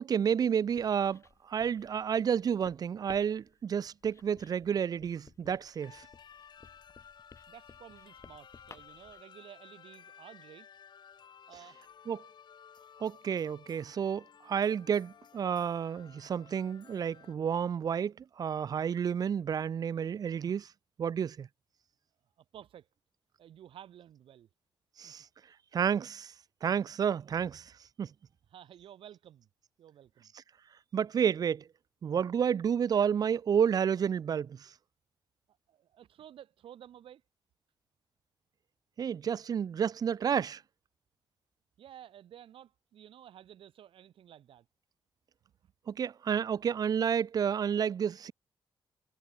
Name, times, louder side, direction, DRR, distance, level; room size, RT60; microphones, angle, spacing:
voice 1, 0.0-6.1 12.1-12.2 13.0-20.7 21.0-21.5 25.0-25.3 25.7-26.3 26.6-27.7 28.0-28.1 30.9-31.7 32.0-34.7 39.0-40.6 45.9-48.3, right 7 dB, 45° right, 0.5 m, -30 dB
Writing, 0.6-9.2, left 5 dB, 35° left, 6.4 m, -58 dB
sound 1, 5.8-17.4, left 8 dB, 55° left, 3.9 m, -56 dB
voice 2, 7.5-10.7 11.5-11.8 22.4-22.9 23.4-24.5 25.0-25.1 28.5-29.5 29.8-30.3 35.7-37.2 41.8-44.7 45.6-45.7, right 10 dB, 85° right, 5.6 m, -53 dB
wide cardioid pair, 140°, 9 cm